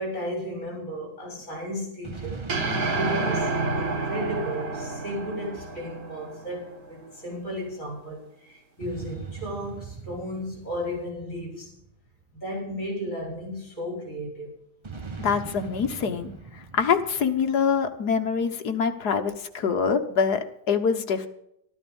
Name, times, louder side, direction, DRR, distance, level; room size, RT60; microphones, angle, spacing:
voice 1, 0.0-2.5 2.9-11.7 12.3-14.5, equal, 50° left, -1 dB, 7.4 m, -34 dB
sound 1, 2.0-5.7 8.8-12.5 14.8-18.3, right 4 dB, 20° right, 0.8 m, -41 dB
sound 2, 2.5-6.9, right 3 dB, 60° right, 2.1 m, -29 dB
voice 2, 15.2-21.3, left 6 dB, 70° left, 6 dB, 1.8 m, -25 dB
13.0 x 13.0 x 5.4 m, 0.76 s
omnidirectional pair, 1.8 m